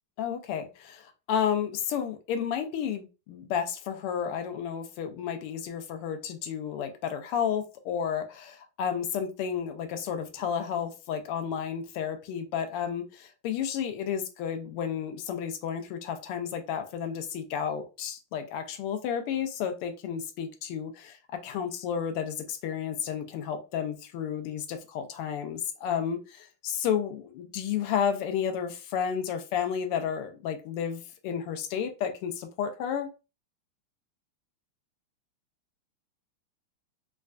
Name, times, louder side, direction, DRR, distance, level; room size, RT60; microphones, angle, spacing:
voice 1, 0.2-33.1, left 8 dB, 90° left, 1.6 m, -32 dB
4.2 x 2.2 x 2.4 m
omnidirectional pair, 2.4 m